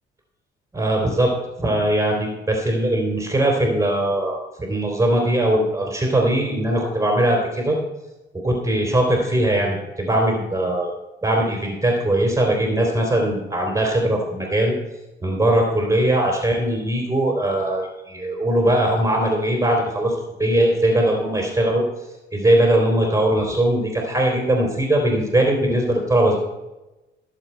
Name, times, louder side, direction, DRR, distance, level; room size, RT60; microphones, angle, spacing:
voice 1, 0.7-1.3 1.6-7.8 8.3-10.9 11.2-14.7 15.2-21.8 22.3-26.4, right 1 dB, 15° right, 0 dB, 3.5 m, -20 dB
16.5 x 7.6 x 4.5 m, 1.0 s
cardioid pair, 90°, 20 cm